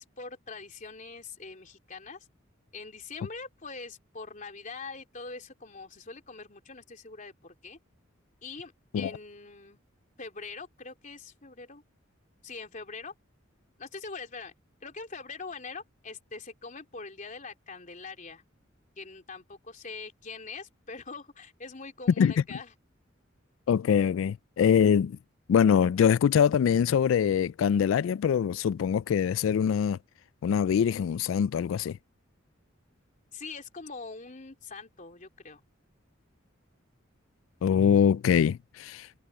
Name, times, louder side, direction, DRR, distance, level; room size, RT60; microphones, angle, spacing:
voice 1, 0.0-2.3 2.7-7.8 8.4-9.8 10.2-11.8 12.4-13.1 13.8-14.5 14.8-18.4 19.0-22.7 33.3-35.6, left 4 dB, 40° left, 3.4 m, -43 dB
voice 2, 23.7-25.2 25.5-30.0 30.4-32.0 37.6-39.1, left 7 dB, 85° left, 0.3 m, -23 dB
head